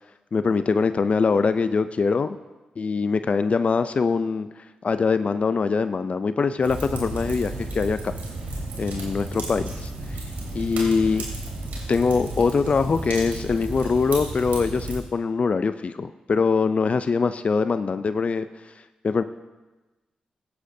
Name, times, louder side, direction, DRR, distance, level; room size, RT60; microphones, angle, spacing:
voice 1, 0.3-2.4 2.8-8.1 8.8-9.7 10.5-11.3 11.9-18.4 19.0-19.2, left 4 dB, 50° left, 11 dB, 0.4 m, -23 dB
Fire, 6.6-15.0, right 2 dB, 85° right, 2.6 m, -33 dB
16.0 x 10.0 x 2.7 m, 1.1 s
supercardioid pair, 50°, 3 cm